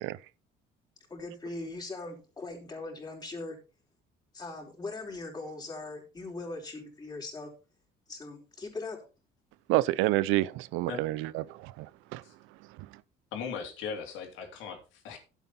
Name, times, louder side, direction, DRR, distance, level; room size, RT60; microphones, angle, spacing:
voice 1, 1.1-3.6 4.3-7.5 8.1-9.0, left 2 dB, 20° left, 4.5 m, -40 dB
voice 2, 9.7-12.2, right 17 dB, 85° right, 0.6 m, -28 dB
voice 3, 13.3-15.2, left 6 dB, 80° left, 3.3 m, -38 dB
11.5 x 8.3 x 4.3 m
cardioid pair, 115°, 20 cm